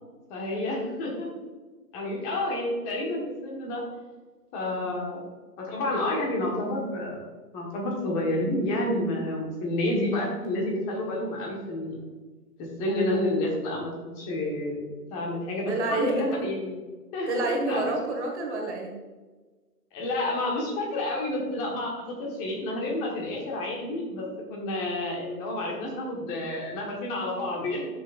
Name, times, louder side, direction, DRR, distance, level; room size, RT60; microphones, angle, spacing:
voice 1, 0.3-1.3 1.9-3.8 4.5-5.2 5.6-7.2 7.5-12.0 12.6-14.8 15.1-16.7 17.1-17.8 19.9-21.9 22.2-27.9, left 1 dB, 15° left, -2 dB, 1.3 m, -29 dB
voice 2, 15.7-16.5 17.3-18.9, right 2 dB, 45° right, 1 dB, 1.6 m, -29 dB
11.0 x 6.3 x 2.4 m, 1.3 s
hypercardioid pair, 150°, 48 cm